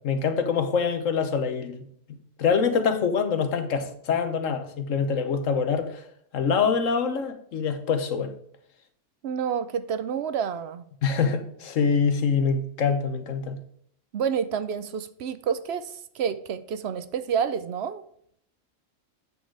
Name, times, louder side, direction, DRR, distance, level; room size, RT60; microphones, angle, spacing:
voice 1, 0.0-1.8 2.4-6.1 6.3-8.3 11.0-13.6, left 6 dB, 85° left, 1.4 m, -25 dB
voice 2, 9.2-10.9 14.1-18.0, right 7 dB, 65° right, 0.8 m, -29 dB
8.7 x 6.4 x 4.7 m
omnidirectional pair, 1.3 m